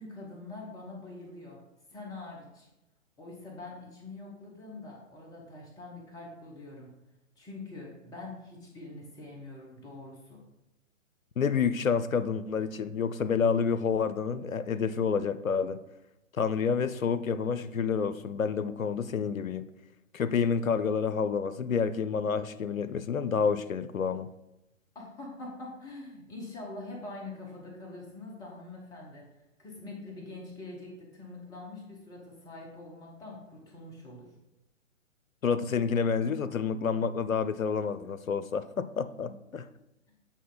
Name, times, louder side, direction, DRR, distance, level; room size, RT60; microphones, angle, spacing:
voice 1, 0.0-1.6 1.9-2.7 3.2-6.9 7.4-10.4 24.9-29.2 29.6-34.3 40.1-40.2, left 2 dB, 10° left, 0.9 m, -44 dB
voice 2, 11.4-15.8 16.4-19.6 20.1-24.3 35.4-39.7, left 6 dB, 85° left, 0.6 m, -29 dB
8.3 x 4.1 x 3.9 m
figure-of-eight pair, 130°, 39 cm